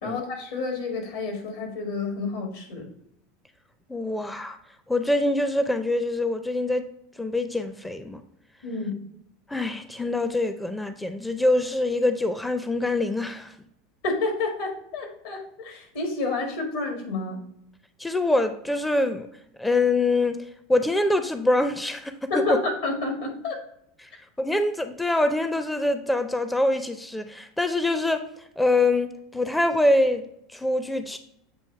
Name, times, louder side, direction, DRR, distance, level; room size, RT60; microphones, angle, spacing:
voice 1, 0.0-2.9 8.6-9.0 14.0-17.4 22.3-23.6, left 3 dB, 75° left, 2 dB, 1.9 m, -29 dB
voice 2, 3.9-4.6 4.9-6.9 7.2-8.2 9.5-13.6 18.0-19.3 19.6-22.6 24.0-24.1 24.4-31.2, left 2 dB, 10° left, 9 dB, 0.5 m, -25 dB
7.8 x 2.7 x 4.6 m, 0.76 s
hypercardioid pair, 90°, 0 cm